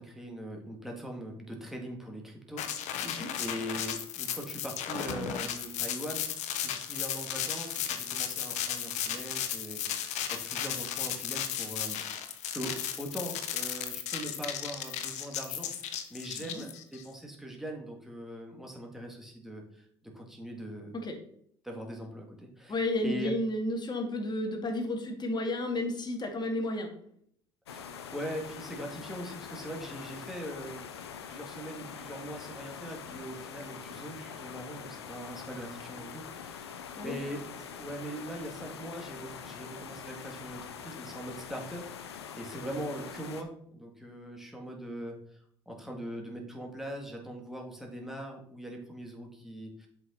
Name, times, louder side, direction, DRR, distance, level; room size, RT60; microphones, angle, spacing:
voice 1, 0.0-10.0 10.3-15.7 16.1-21.0 21.6-23.3 27.7-30.9 31.2-49.9, right 1 dB, 5° right, 0 dB, 2.6 m, -41 dB
sound 1, 2.6-17.0, left 9 dB, 60° left, 1.0 m, -35 dB
voice 2, 3.0-3.3 16.4-16.6 20.9-21.2 22.7-26.9 37.0-37.2, left 1 dB, 35° left, 3 dB, 2.1 m, -32 dB
sound 2, 27.7-43.4, left 7 dB, 90° left, 0.6 m, -44 dB
7.5 x 5.9 x 4.1 m, 0.66 s
hypercardioid pair, 60°, 13 cm